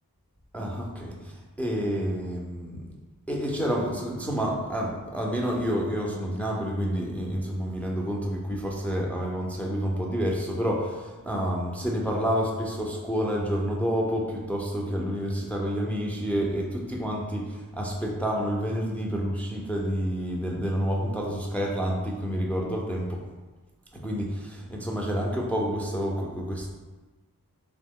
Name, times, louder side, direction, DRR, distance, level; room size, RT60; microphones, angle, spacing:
voice 1, 0.5-2.9 3.3-23.2 23.9-26.7, equal, 5° left, -2 dB, 0.4 m, -29 dB
2.8 x 2.1 x 3.5 m, 1.2 s
wide cardioid pair, 70°, 36 cm